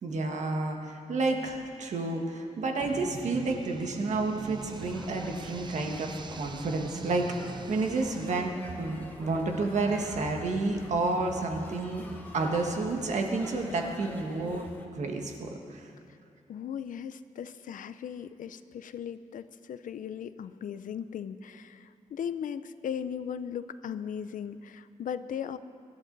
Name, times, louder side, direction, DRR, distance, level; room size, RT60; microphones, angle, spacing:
voice 1, 0.0-8.5 8.8-12.0 12.3-14.7 14.9-15.9, right 3 dB, 65° right, 3 dB, 1.6 m, -30 dB
sound 1, 2.8-8.3, right 5 dB, 35° right, 0.5 m, -43 dB
sound 2, 4.6-14.9, left 1 dB, 15° left, 1.1 m, -47 dB
voice 2, 16.5-25.6, left 8 dB, 90° left, 13 dB, 0.5 m, -37 dB
24.0 x 11.5 x 4.0 m, 2.4 s
wide cardioid pair, 170°, 13 cm